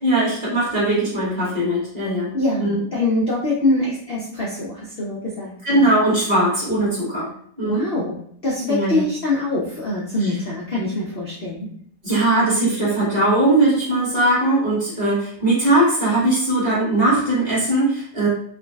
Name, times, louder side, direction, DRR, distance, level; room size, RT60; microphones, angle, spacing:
voice 1, 0.0-2.8 5.6-7.3 7.6-7.8 8.7-9.0 10.2-10.3 12.0-18.3, right 1 dB, 30° right, -8 dB, 1.2 m, -20 dB
voice 2, 2.3-5.9 7.6-8.2 8.4-11.7, left 2 dB, 70° left, -5 dB, 0.5 m, -24 dB
3.5 x 2.2 x 2.3 m, 0.62 s
omnidirectional pair, 1.8 m